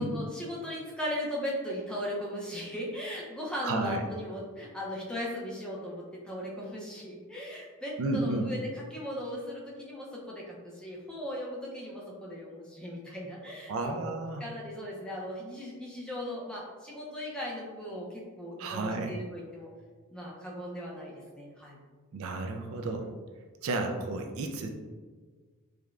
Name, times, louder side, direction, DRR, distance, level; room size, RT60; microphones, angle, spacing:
voice 1, 0.0-14.1 14.4-19.7 20.1-21.8, equal, 5° left, -4 dB, 0.6 m, -38 dB
voice 2, 3.6-4.0 8.0-8.5 13.7-14.4 18.6-19.1 22.1-23.1 23.6-24.7, right 2 dB, 65° right, 3 dB, 0.4 m, -32 dB
4.9 x 2.2 x 2.4 m, 1.5 s
head